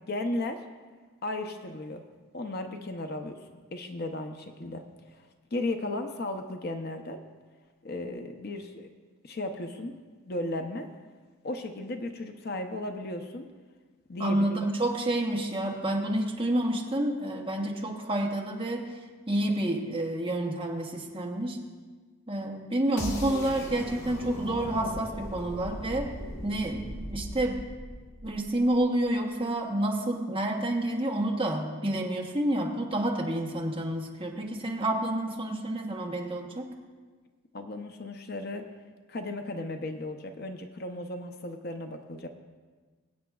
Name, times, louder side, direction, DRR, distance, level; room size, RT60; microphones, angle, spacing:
voice 1, 0.1-0.6 1.2-2.0 2.3-3.4 3.7-4.8 5.1-5.2 5.5-7.2 7.8-8.9 9.2-9.9 10.3-10.9 11.4-13.5 14.1-14.7 37.5-38.7 39.1-42.3, left 2 dB, 45° left, 5 dB, 0.6 m, -35 dB
voice 2, 14.2-18.9 19.3-21.6 22.3-26.1 26.4-26.8 27.1-27.6 28.2-36.7, right 1 dB, 25° right, 0 dB, 1.0 m, -29 dB
sound 1, 23.0-28.9, equal, 75° left, 1.4 m, -39 dB
22.5 x 8.5 x 2.4 m, 1.4 s
head